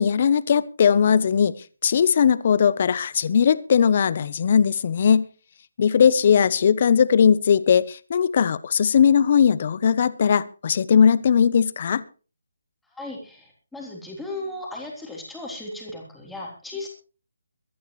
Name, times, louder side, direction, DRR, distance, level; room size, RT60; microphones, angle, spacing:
voice 1, 0.0-1.5 1.8-5.3 5.8-12.0, left 7 dB, 40° left, 18 dB, 0.8 m, -19 dB
voice 2, 12.9-16.9, left 2 dB, ahead, -3 dB, 3.6 m, -36 dB
22.5 x 11.0 x 3.2 m, 0.36 s
hypercardioid pair, 165°, 0 cm